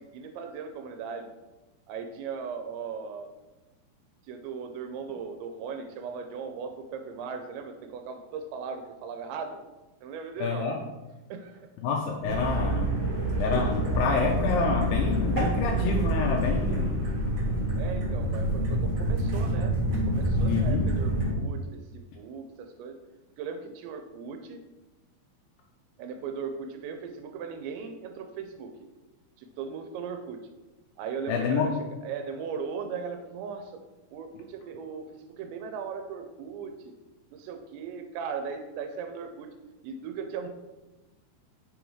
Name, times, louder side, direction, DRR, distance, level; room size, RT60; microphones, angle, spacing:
voice 1, 0.0-1.3 1.9-3.3 4.3-9.6 10.0-10.7 11.3-11.7 17.8-23.0 23.4-24.6 26.0-28.7 29.4-30.4 31.0-33.8 34.1-37.0 37.3-39.5 39.8-40.5, right 6 dB, 85° right, 6 dB, 2.9 m, -38 dB
voice 2, 10.4-10.8 11.8-12.9 13.4-17.0 20.5-20.9 31.3-31.7, left 5 dB, 80° left, 1 dB, 2.4 m, -28 dB
sound 1, 12.2-21.3, right 1 dB, 45° right, 2.1 m, -27 dB
7.1 x 3.9 x 4.6 m, 1.1 s
omnidirectional pair, 5.1 m